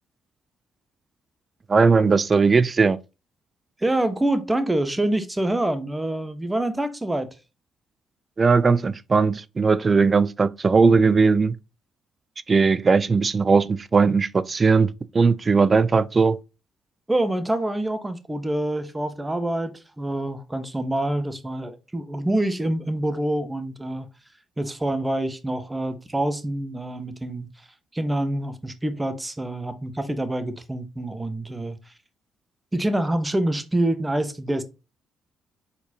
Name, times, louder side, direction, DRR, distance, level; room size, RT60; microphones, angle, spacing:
voice 1, 1.7-3.0 8.4-11.6 12.5-16.4, right 4 dB, 40° right, 0.3 m, -19 dB
voice 2, 3.8-7.3 17.1-24.1 24.6-27.7 27.9-31.9 32.7-34.6, right 1 dB, 15° right, 0.9 m, -26 dB
4.1 x 4.1 x 2.8 m
hypercardioid pair, 50°, 0 cm